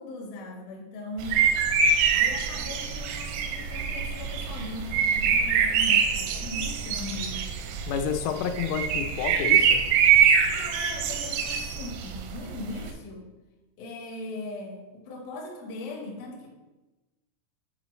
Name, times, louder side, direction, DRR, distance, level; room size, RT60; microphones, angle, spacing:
voice 1, 0.0-1.4 2.1-7.5 10.5-13.3 13.8-16.5, left 2 dB, 75° left, -1 dB, 2.3 m, -39 dB
sound 1, 1.2-12.9, right 6 dB, 85° right, 3.3 m, -24 dB
voice 2, 7.9-9.9, left 8 dB, 90° left, 5 dB, 3.3 m, -30 dB
9.0 x 4.0 x 3.1 m, 1.1 s
omnidirectional pair, 5.9 m